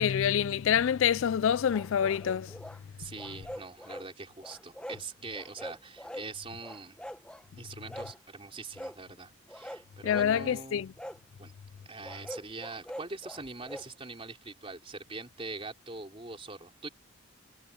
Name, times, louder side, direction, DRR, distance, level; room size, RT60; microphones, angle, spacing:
voice 1, 0.0-2.5 10.0-10.9, left 8 dB, 70° left, 0.3 m, -26 dB
sound 1, 1.7-2.8 3.2-4.1 4.4-5.0 5.3-6.3 6.6-7.4 7.9-8.2 8.7-9.0 9.5-10.3 11.0-11.2 12.0-13.9, equal, 5° left, 1.0 m, -43 dB
voice 2, 3.0-7.0 7.6-10.9 11.4-11.5 11.9-16.9, right 3 dB, 25° right, 4.0 m, -43 dB
head